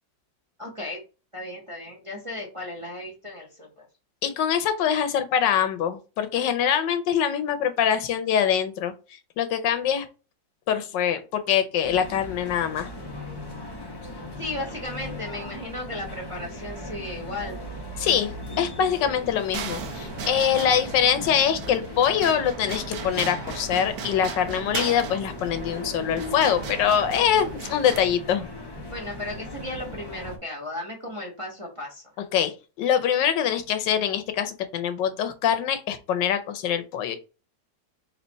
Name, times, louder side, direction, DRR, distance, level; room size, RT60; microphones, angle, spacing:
voice 1, 0.6-1.0 1.3-3.8 14.4-17.6 28.9-32.0, left 1 dB, 20° right, 0 dB, 0.9 m, -35 dB
voice 2, 4.2-8.9 9.4-10.1 10.7-12.9 18.0-18.3 18.6-28.5 32.3-32.5 32.8-37.2, left 8 dB, 80° left, 9 dB, 1.3 m, -24 dB
sound 1, 11.8-30.4, left 1 dB, 35° left, 0.4 m, -38 dB
sound 2, 19.5-28.0, right 6 dB, 65° right, 1.1 m, -37 dB
4.4 x 2.9 x 4.0 m, 0.32 s
omnidirectional pair, 2.0 m